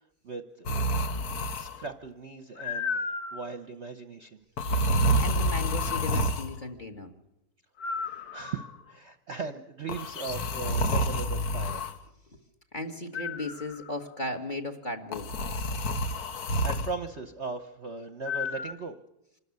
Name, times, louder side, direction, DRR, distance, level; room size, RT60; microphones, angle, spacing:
voice 1, 0.2-0.8 1.5-3.0 3.3-4.4 8.3-11.8 16.3-19.0, right 4 dB, 45° right, 8 dB, 1.0 m, -38 dB
sound 1, 0.7-1.9 2.6-3.5 4.6-6.5 7.8-8.7 9.9-11.9 13.1-13.9 15.1-16.9 18.3-18.7, equal, 60° left, 1.5 m, -29 dB
voice 2, 5.2-7.1 12.3-12.4 12.7-15.3, left 2 dB, 25° left, 6 dB, 1.6 m, -36 dB
26.0 x 13.0 x 9.5 m, 0.90 s
omnidirectional pair, 2.0 m